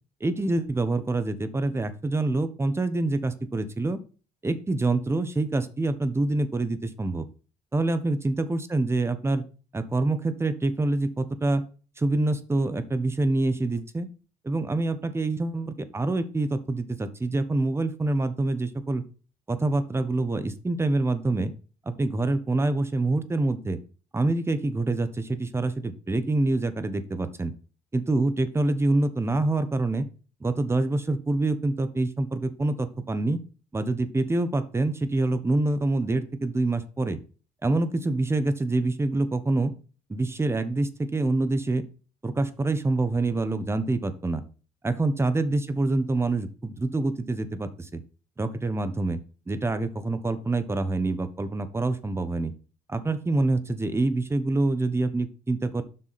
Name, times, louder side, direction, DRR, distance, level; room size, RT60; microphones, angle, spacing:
voice 1, 0.2-4.0 4.4-7.3 7.7-9.4 9.7-11.6 12.0-14.1 14.4-19.0 19.5-21.5 21.9-23.8 24.1-27.5 27.9-30.1 30.4-33.4 33.7-37.2 37.6-39.7 40.1-41.8 42.2-44.4 44.8-48.0 48.4-49.2 49.5-52.5 52.9-55.8, right 2 dB, 15° right, 12 dB, 1.1 m, -26 dB
7.7 x 6.1 x 4.2 m, 0.37 s
cardioid pair, 100°, 15 cm